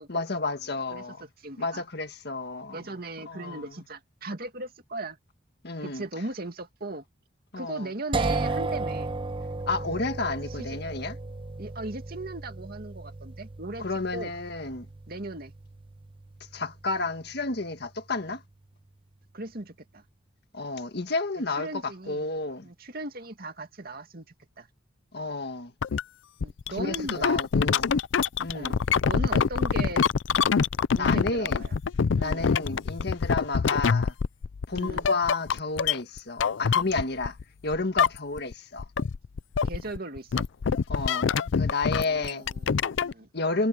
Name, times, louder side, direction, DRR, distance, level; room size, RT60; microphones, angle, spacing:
voice 1, 0.0-1.3 1.6-2.8 3.2-3.7 5.6-6.0 7.5-7.9 9.7-11.2 13.8-14.9 16.5-18.4 20.5-22.7 25.1-25.7 26.8-28.0 28.4-28.8 31.0-31.6 32.2-34.1 34.7-37.4 37.6-38.9 40.9-42.4 43.3-43.7, left 3 dB, 60° left, 1.7 m, -31 dB
voice 2, 1.4-1.8 2.7-5.2 5.8-7.0 7.6-9.1 11.6-13.9 14.1-14.3 15.1-15.5 19.3-20.0 21.6-22.2 22.6-24.3 24.6-24.7 26.4-27.4 28.5-30.1 30.9-31.8 32.1-32.5 34.7-35.1 39.6-40.5 42.0-43.3, right 2 dB, 55° right, 2.4 m, -38 dB
sound 1, 8.1-17.9, right 3 dB, 30° right, 0.6 m, -35 dB
sound 2, 25.8-26.0 26.4-37.4 37.7-38.5 38.8-43.1, left 6 dB, 85° left, 0.5 m, -25 dB
head